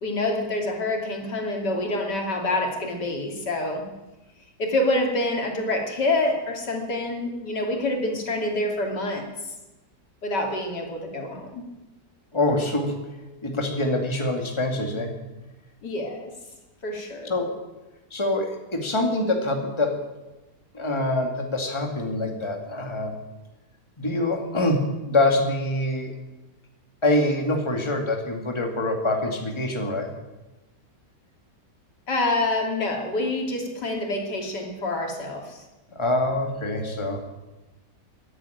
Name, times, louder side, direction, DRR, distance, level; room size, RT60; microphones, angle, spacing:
voice 1, 0.0-3.8 4.6-9.3 10.2-11.6 15.8-16.3 16.8-17.3 32.1-35.6 36.8-37.0, left 2 dB, 80° left, 2 dB, 3.3 m, -27 dB
voice 2, 12.3-13.0 13.4-15.1 17.3-17.5 18.1-20.0 20.7-23.2 24.0-26.1 27.0-30.1 35.9-37.2, left 2 dB, 15° left, 3 dB, 2.1 m, -25 dB
14.5 x 11.0 x 9.2 m, 1.1 s
omnidirectional pair, 1.8 m